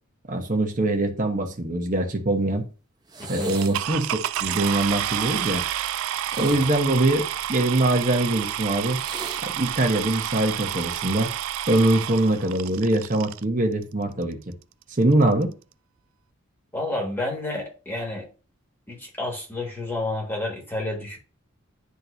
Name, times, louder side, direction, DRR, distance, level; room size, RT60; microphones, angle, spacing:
voice 1, 0.3-2.6 3.3-5.6 6.4-7.2 7.5-9.0 9.4-11.3 11.7-14.4 15.0-15.5, right 2 dB, 40° right, 3 dB, 1.1 m, -23 dB
sound 1, 3.1-3.9 6.1-7.7 8.9-9.5 10.5-10.9, right 4 dB, 20° right, 0.7 m, -40 dB
sound 2, 3.5-13.4 14.2-14.3 14.8-14.9 15.1-15.4, right 12 dB, 75° right, 0.3 m, -30 dB
voice 2, 16.7-18.3 18.9-21.2, left 2 dB, 10° left, -1 dB, 1.8 m, -30 dB
10.5 x 3.8 x 2.7 m, 0.35 s
head